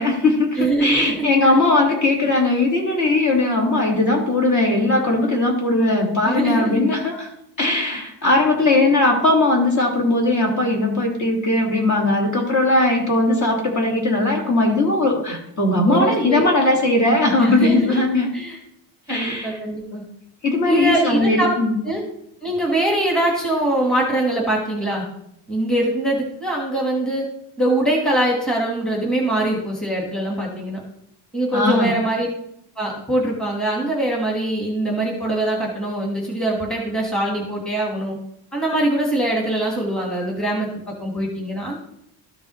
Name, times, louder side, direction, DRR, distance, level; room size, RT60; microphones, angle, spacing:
voice 1, 0.0-7.3 7.6-18.3 19.1-19.6 20.4-21.8 31.5-31.9, left 2 dB, 40° left, 0 dB, 2.0 m, -19 dB
voice 2, 0.6-1.6 6.2-6.8 15.9-16.4 17.4-18.0 18.3-18.6 19.1-20.0 20.6-21.5 21.8-22.0 22.4-25.1 25.5-27.3 27.6-30.8 31.3-32.3 32.8-38.2 38.5-41.8, right 1 dB, ahead, -2 dB, 1.5 m, -23 dB
13.0 x 5.3 x 3.1 m, 0.77 s
cardioid pair, 160°, 46 cm